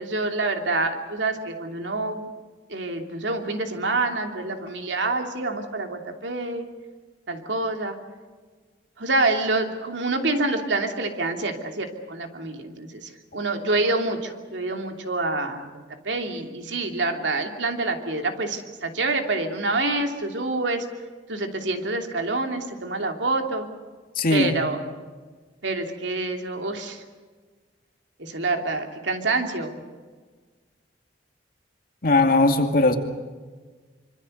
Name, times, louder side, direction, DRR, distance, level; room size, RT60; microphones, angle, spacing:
voice 1, 0.0-2.3 2.7-6.7 7.3-8.0 9.0-20.9 21.3-23.7 24.3-24.8 25.6-27.0 28.2-29.8, right 2 dB, 80° right, 4 dB, 2.9 m, -27 dB
voice 2, 24.2-24.5 32.0-33.0, left 2 dB, 50° left, 5 dB, 2.4 m, -19 dB
25.5 x 25.0 x 6.6 m, 1.4 s
head